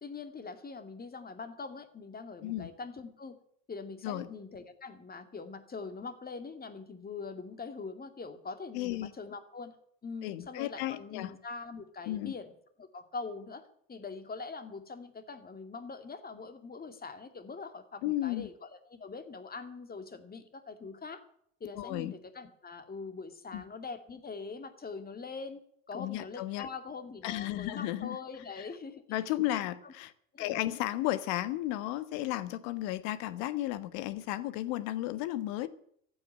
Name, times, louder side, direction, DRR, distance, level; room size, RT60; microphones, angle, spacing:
voice 1, 0.0-3.4 3.7-9.7 10.0-12.5 12.8-21.2 21.6-25.6 25.9-29.0 29.6-29.9 30.3-30.7, left 4 dB, 25° left, 2.5 m, -43 dB
voice 2, 8.7-9.1 10.2-11.3 12.1-12.3 18.0-18.5 21.7-22.1 23.5-23.6 25.9-26.7 27.2-28.2 29.1-30.1 30.4-35.7, left 15 dB, 65° left, 1.4 m, -34 dB
14.5 x 8.8 x 10.0 m
hypercardioid pair, 75°, 39 cm